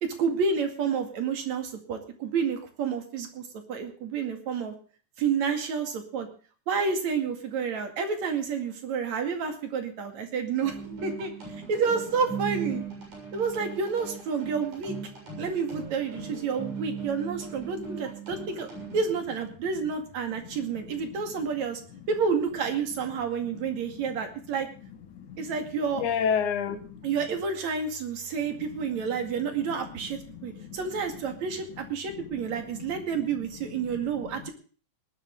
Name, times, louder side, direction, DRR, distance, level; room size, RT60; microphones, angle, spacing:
voice 1, 0.0-3.4 3.7-4.7 5.2-6.3 6.7-11.3 11.7-12.8 13.3-15.0 15.4-18.7 18.9-21.8 22.1-24.7 25.4-26.0 27.0-34.5, right 5 dB, 65° right, 5 dB, 3.5 m, -29 dB
sound 1, 10.6-19.1, right 5 dB, 80° right, 8.5 m, -38 dB
voice 2, 26.0-27.1 30.3-30.8 32.3-32.4 33.9-34.0, left 7 dB, 80° left, 9 dB, 3.0 m, -29 dB
20.0 x 11.5 x 3.6 m, 0.40 s
omnidirectional pair, 3.5 m